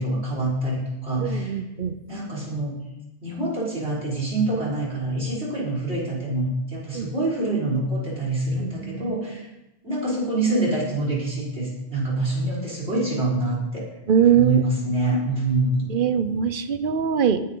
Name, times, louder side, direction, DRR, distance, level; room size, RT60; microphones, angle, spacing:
voice 1, 0.0-1.6 2.1-2.8 3.2-9.5 9.8-13.8 14.3-15.9, right 2 dB, 70° right, -5 dB, 5.3 m, -25 dB
voice 2, 1.2-1.9 6.9-7.1 8.6-9.2 14.1-14.6 15.9-17.4, right 7 dB, 55° right, 11 dB, 1.0 m, -22 dB
19.5 x 9.7 x 3.9 m, 0.93 s
omnidirectional pair, 1.1 m